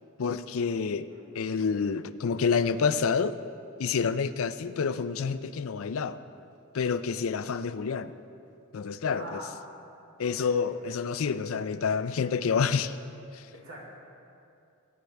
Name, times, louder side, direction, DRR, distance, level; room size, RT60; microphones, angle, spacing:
voice 1, 0.2-1.1 1.3-3.4 3.8-6.2 6.7-8.1 8.7-9.4 10.2-13.0 13.3-13.5, left 5 dB, 70° left, 13 dB, 0.5 m, -28 dB
voice 2, 9.1-9.5 10.2-10.5 10.8-10.9 13.5-13.9, right 1 dB, 80° right, -5 dB, 3.2 m, -43 dB
20.5 x 9.6 x 3.4 m, 2.6 s
head